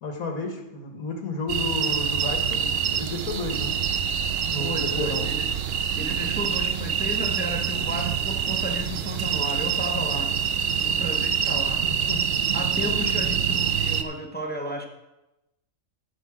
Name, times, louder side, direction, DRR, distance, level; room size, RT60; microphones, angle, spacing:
voice 1, 0.0-3.7 4.5-5.3 12.0-12.2 12.8-12.9, left 2 dB, 80° left, 3 dB, 1.7 m, -32 dB
sound 1, 1.5-14.0, right 8 dB, 60° right, 0.7 m, -26 dB
voice 2, 4.6-5.6 6.0-10.3 10.8-11.9 12.5-14.9, equal, 10° left, 3 dB, 0.7 m, -33 dB
10.5 x 7.3 x 4.8 m, 0.95 s
omnidirectional pair, 1.5 m